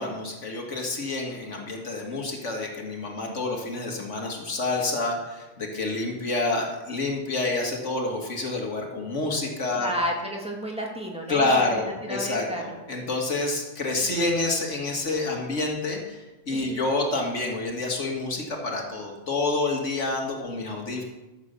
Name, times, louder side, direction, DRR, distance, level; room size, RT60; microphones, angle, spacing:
voice 1, 0.0-9.9 11.3-21.0, left 2 dB, 70° left, 1 dB, 2.2 m, -28 dB
voice 2, 9.8-12.8 14.0-14.2 16.5-16.8, equal, 5° right, -1 dB, 2.4 m, -32 dB
13.5 x 7.3 x 6.8 m, 1.1 s
omnidirectional pair, 1.3 m